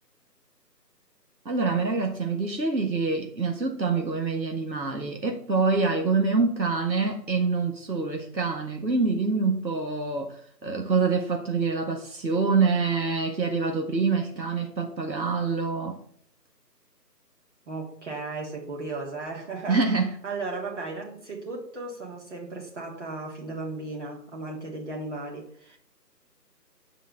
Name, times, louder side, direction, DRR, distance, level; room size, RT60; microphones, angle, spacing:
voice 1, 1.5-10.4 10.6-16.0 19.7-20.1, right 4 dB, 90° right, 3 dB, 1.9 m, -26 dB
voice 2, 17.7-25.8, right 3 dB, 45° right, -2 dB, 3.6 m, -36 dB
10.0 x 5.0 x 7.2 m, 0.62 s
figure-of-eight pair, 165°, 50 cm